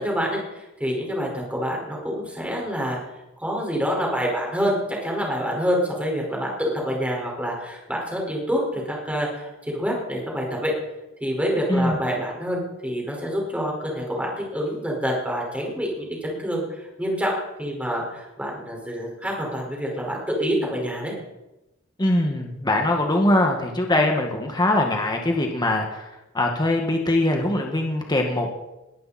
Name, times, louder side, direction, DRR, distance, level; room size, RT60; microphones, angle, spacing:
voice 1, 0.0-3.0 3.4-10.7 11.2-16.6 17.0-17.3 17.6-21.1, equal, 5° right, -2 dB, 5.3 m, -27 dB
voice 2, 22.0-26.1 26.3-28.5, left 1 dB, 20° left, 2 dB, 1.9 m, -22 dB
21.5 x 14.0 x 4.4 m, 0.99 s
head